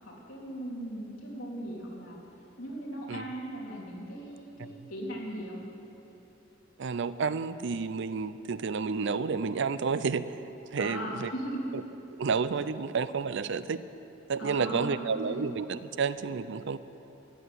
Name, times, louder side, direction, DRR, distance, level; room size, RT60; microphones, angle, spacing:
voice 1, 0.0-2.2 2.6-5.6 10.8-11.7 14.4-15.5, equal, 75° left, -4 dB, 3.6 m, -38 dB
voice 2, 6.8-10.3 10.7-11.3 12.2-13.8 14.3-16.8, right 5 dB, 65° right, 14 dB, 0.5 m, -30 dB
14.5 x 8.2 x 9.6 m, 3.0 s
head